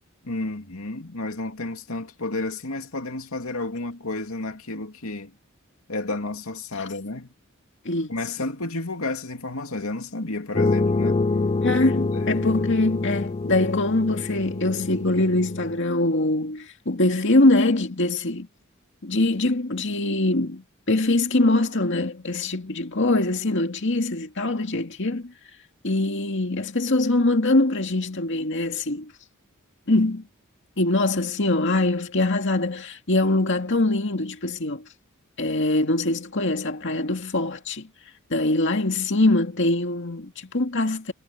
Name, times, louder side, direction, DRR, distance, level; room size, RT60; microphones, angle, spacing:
voice 1, 0.2-5.3 5.9-7.3 8.1-11.2 11.7-11.8 12.1-12.4, left 2 dB, 85° left, 2.5 m, -31 dB
sound 1, 10.5-15.8, left 3 dB, 30° left, 0.4 m, -26 dB
voice 2, 11.6-18.5 19.0-25.3 25.8-29.1 29.9-30.2 30.8-34.9 35.4-37.9 38.3-41.1, left 2 dB, 60° left, 2.3 m, -23 dB
head